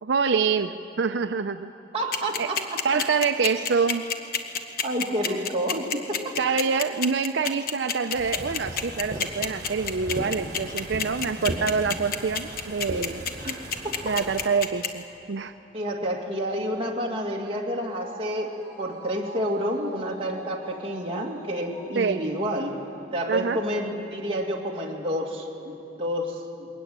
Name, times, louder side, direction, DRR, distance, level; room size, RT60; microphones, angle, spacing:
voice 1, 0.0-1.7 2.4-2.5 2.8-4.1 5.3-5.4 6.4-13.2 14.0-15.5 22.0-22.2 23.3-23.6, right 5 dB, 85° right, 9 dB, 0.5 m, -26 dB
voice 2, 1.9-3.0 4.8-6.3 13.4-14.1 15.7-22.8 23.1-26.7, equal, 35° right, -1 dB, 2.3 m, -29 dB
sound 1, 2.1-14.9, left 7 dB, 55° left, 1.1 m, -27 dB
sound 2, 8.1-14.5, right 1 dB, 60° right, 3.8 m, -37 dB
sound 3, 16.8-23.4 23.8-23.9, right 2 dB, 75° left, 4.2 m, -46 dB
21.5 x 14.0 x 9.5 m, 2.8 s
head